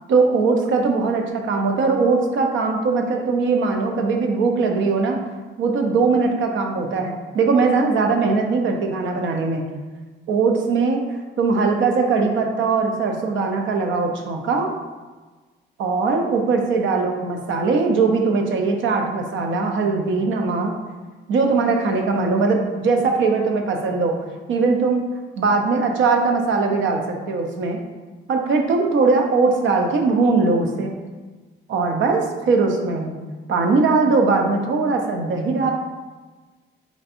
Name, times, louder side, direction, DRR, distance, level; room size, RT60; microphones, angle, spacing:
voice 1, 0.1-5.2 5.6-9.6 10.3-11.0 11.4-14.7 15.8-20.7 21.3-24.2 24.5-25.0 25.4-27.8 28.3-30.9 31.7-33.1 33.5-35.7, right 4 dB, 75° right, 3 dB, 0.7 m, -20 dB
4.4 x 4.2 x 2.6 m, 1.3 s
cardioid pair, 90°, 20 cm